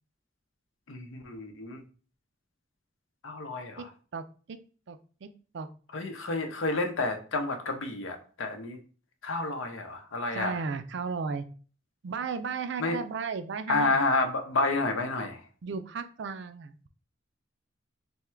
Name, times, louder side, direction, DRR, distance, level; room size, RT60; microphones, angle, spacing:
voice 1, 0.9-1.8 3.2-3.9 5.9-8.8 9.2-10.5 12.8-13.0 13.7-15.4, left 3 dB, 85° left, 6 dB, 0.7 m, -30 dB
voice 2, 3.8-4.6 4.9-5.3 5.5-5.7 10.3-11.5 12.0-14.0 15.6-16.9, right 5 dB, 65° right, 10 dB, 0.4 m, -35 dB
3.5 x 2.2 x 4.4 m, 0.38 s
head